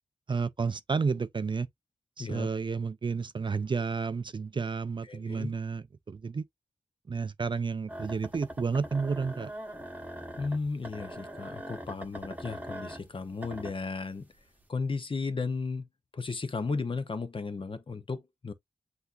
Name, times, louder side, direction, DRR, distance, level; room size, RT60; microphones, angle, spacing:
voice 1, 0.3-1.7 2.2-6.4 7.1-9.5, right 5 dB, 35° right, 0.4 m, -31 dB
voice 2, 2.2-2.5 5.1-5.5 10.4-14.3 14.7-15.9 16.1-18.5, left 4 dB, 40° left, 0.8 m, -34 dB
sound 1, 7.9-14.2 14.6-14.7, equal, 10° right, 1.1 m, -42 dB
8.0 x 2.7 x 2.5 m
wide cardioid pair, 90°, 14 cm